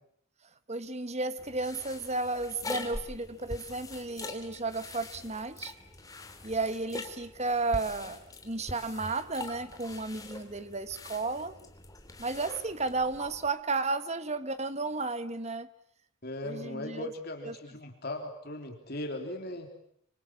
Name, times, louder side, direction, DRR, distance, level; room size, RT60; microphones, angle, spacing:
voice 1, 0.7-5.7 6.4-11.6 12.2-15.7 16.4-17.1 17.4-17.5, right 3 dB, 30° right, 12 dB, 1.4 m, -33 dB
sound 1, 1.4-13.5, left 2 dB, 15° left, 2.8 m, -43 dB
voice 2, 16.2-19.7, left 1 dB, 45° left, 5 dB, 3.3 m, -38 dB
26.0 x 26.0 x 8.6 m, 0.67 s
head